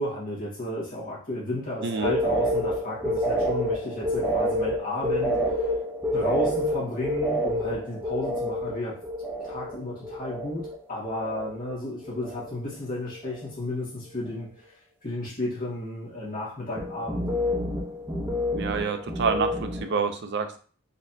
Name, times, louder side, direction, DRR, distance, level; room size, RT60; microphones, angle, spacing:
voice 1, 0.0-5.7 6.1-9.0 9.4-17.2, left 1 dB, 45° left, -6 dB, 1.8 m, -33 dB
sound 1, 1.8-10.8 11.0-11.7 12.0-12.7 13.0-13.5 16.8-19.9, equal, 10° right, 0.9 m, -28 dB
voice 2, 1.8-2.1 18.5-20.6, right 5 dB, 60° right, 7 dB, 0.5 m, -27 dB
4.1 x 3.3 x 2.8 m, 0.41 s
head